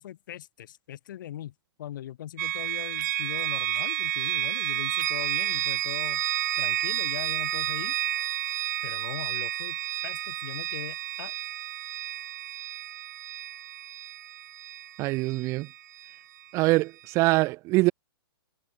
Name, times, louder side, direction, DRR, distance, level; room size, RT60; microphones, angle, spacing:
voice 1, 0.0-1.5 1.8-6.2 6.6-8.0 8.8-9.8 10.0-11.3, left 12 dB, 50° left, 5.7 m, -40 dB
sound 1, 2.4-16.2, right 14 dB, 45° right, 0.9 m, -31 dB
voice 2, 15.0-15.7 16.5-17.9, right 21 dB, 20° right, 1.2 m, -24 dB
hypercardioid pair, 165°, 13 cm